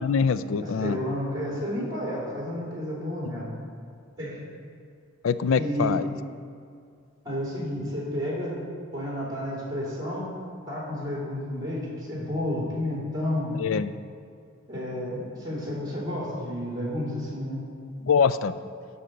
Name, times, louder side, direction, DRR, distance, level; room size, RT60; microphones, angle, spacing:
voice 1, 0.0-1.0 5.2-6.0 13.6-13.9 18.0-18.5, left 6 dB, 85° left, 14 dB, 0.4 m, -24 dB
voice 2, 0.6-3.5 4.2-4.4 5.5-6.0 7.2-8.6 8.9-10.3 10.7-13.6 14.7-17.6, left 1 dB, 20° right, -5 dB, 2.8 m, -31 dB
13.0 x 4.3 x 6.6 m, 2.2 s
head